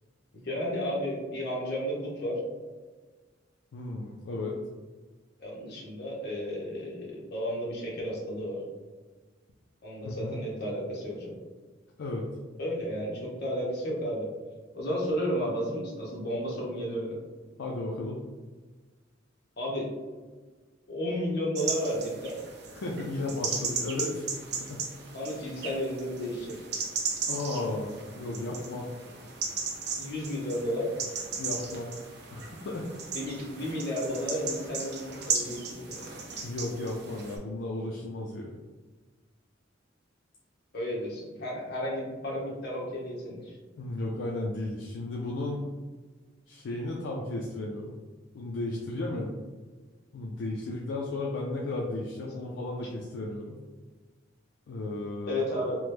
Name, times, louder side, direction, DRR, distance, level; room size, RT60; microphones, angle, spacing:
voice 1, 0.4-2.4 5.4-8.6 9.8-11.3 12.6-14.3 14.7-17.2 19.6-19.9 20.9-22.4 25.1-26.5 30.0-30.9 33.1-36.0 40.7-43.6 55.3-55.8, equal, 55° left, -3 dB, 0.9 m, -32 dB
voice 2, 3.7-4.6 10.0-10.4 12.0-12.2 17.6-18.2 22.7-24.2 24.7-24.8 27.3-28.9 31.4-31.9 32.3-32.9 36.4-38.6 43.8-45.7 46.5-48.0 48.3-49.3 50.1-53.6 54.7-55.4, left 2 dB, 75° left, -1 dB, 0.4 m, -34 dB
sound 1, 21.5-37.4, right 5 dB, 60° right, 0.6 m, -36 dB
2.9 x 2.1 x 3.3 m, 1.3 s
head